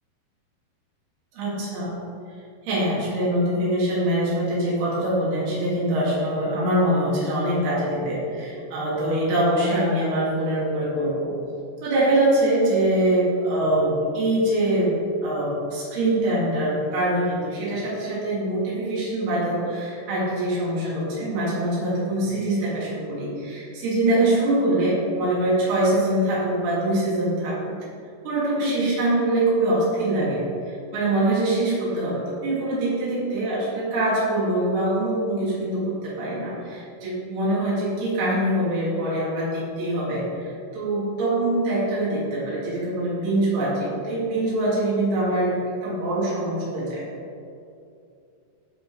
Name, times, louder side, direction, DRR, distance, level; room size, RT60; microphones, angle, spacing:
voice 1, 1.3-2.0 2.6-11.3 11.8-14.9 15.2-27.8 28.2-47.1, right 1 dB, 85° right, -8 dB, 4.7 m, -24 dB
12.5 x 5.0 x 5.5 m, 2.5 s
omnidirectional pair, 4.5 m